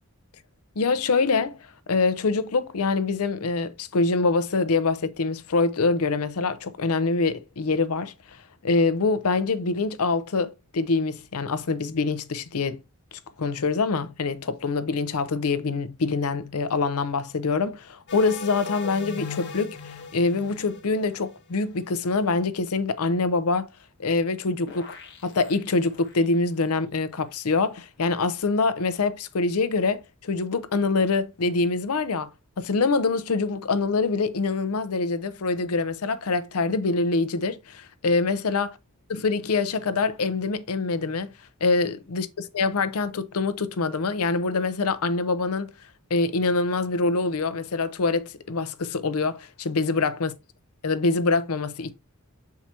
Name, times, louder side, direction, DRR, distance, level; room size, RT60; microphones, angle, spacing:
voice 1, 0.8-1.6 1.9-8.1 8.6-12.8 13.4-23.7 24.0-25.0 25.2-32.3 32.6-38.7 39.2-41.3 41.6-42.3 42.5-45.7 46.1-50.3 50.8-51.9, left 3 dB, 80° left, 0.6 m, -25 dB
sound 1, 18.1-21.9 24.7-26.2, left 4 dB, 55° left, 1.0 m, -39 dB
7.3 x 4.7 x 2.8 m
head